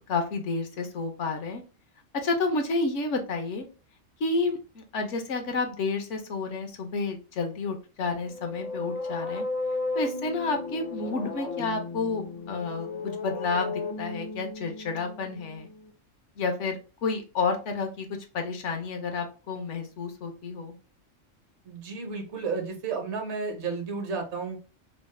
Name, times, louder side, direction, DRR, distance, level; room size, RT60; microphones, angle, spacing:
voice 1, 0.1-1.6 2.1-3.7 4.2-9.4 9.9-15.7 16.4-18.1 18.3-20.7, left 3 dB, 70° left, 5 dB, 1.0 m, -30 dB
sound 1, 8.1-15.9, left 3 dB, 50° left, 0.5 m, -35 dB
voice 2, 21.6-24.6, right 4 dB, 65° right, 4 dB, 1.0 m, -32 dB
3.1 x 2.0 x 3.1 m, 0.33 s
omnidirectional pair, 1.3 m